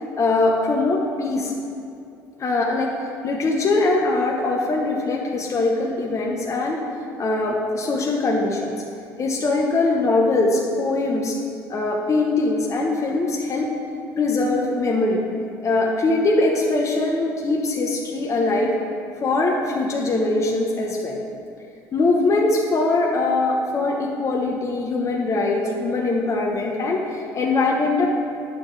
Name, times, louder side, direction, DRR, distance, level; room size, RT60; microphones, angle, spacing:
voice 1, 0.2-1.5 2.4-2.9 3.2-6.8 7.2-8.7 9.2-11.4 11.7-13.7 14.2-15.2 15.6-18.7 19.2-21.2 21.9-28.1, left 2 dB, 35° left, -1 dB, 1.1 m, -22 dB
9.7 x 7.3 x 3.4 m, 2.6 s
supercardioid pair, 75°, 9 cm